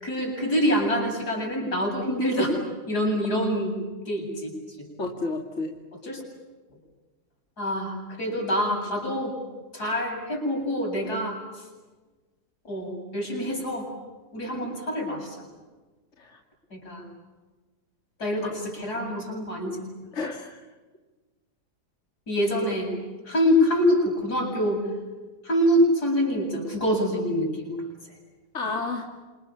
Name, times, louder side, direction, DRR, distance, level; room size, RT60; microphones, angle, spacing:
voice 1, 0.0-2.6 2.9-3.7 4.0-4.5 4.8-4.9 6.0-6.2 7.6-9.4 9.7-11.4 12.7-13.9 14.3-15.5 16.7-17.0 18.2-19.8 22.3-22.9 23.3-24.8 25.4-27.8, equal, 75° left, 1 dB, 8.4 m, -25 dB
voice 2, 5.0-5.7 16.2-16.4 18.4-18.6 20.1-20.6 28.5-29.1, left 3 dB, 45° left, 2 dB, 2.8 m, -31 dB
29.0 x 27.0 x 7.2 m, 1.2 s
omnidirectional pair, 1.7 m